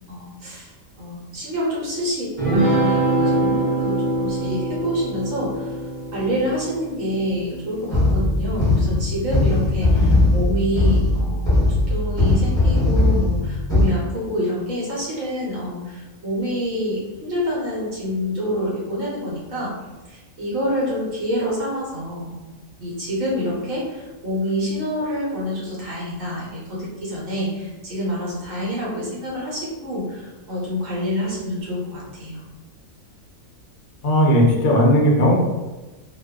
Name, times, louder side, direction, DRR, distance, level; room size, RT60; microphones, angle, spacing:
voice 1, 0.1-5.8 6.1-19.7 20.1-22.5 22.8-32.4, equal, 65° right, -6 dB, 1.1 m, -27 dB
sound 1, 2.4-8.0, right 1 dB, 45° right, 0.6 m, -24 dB
sound 2, 7.9-13.8, left 2 dB, 5° left, 0.4 m, -19 dB
voice 2, 34.0-35.3, equal, 65° left, -2 dB, 0.6 m, -16 dB
2.5 x 2.2 x 2.2 m, 1.2 s
omnidirectional pair, 1.5 m